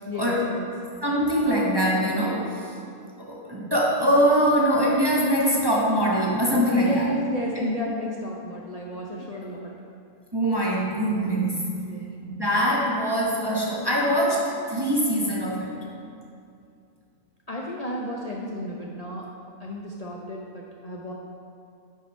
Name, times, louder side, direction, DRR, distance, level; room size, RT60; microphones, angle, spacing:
voice 1, 0.1-0.7 6.8-9.7 11.9-12.1 17.5-19.3 19.6-21.1, left 1 dB, 50° left, -2 dB, 0.4 m, -32 dB
voice 2, 1.0-2.7 3.2-7.1 7.5-7.6 10.3-11.7 12.2-15.7, equal, 20° right, -4 dB, 0.7 m, -23 dB
8.2 x 4.8 x 5.3 m, 2.5 s
omnidirectional pair, 1.5 m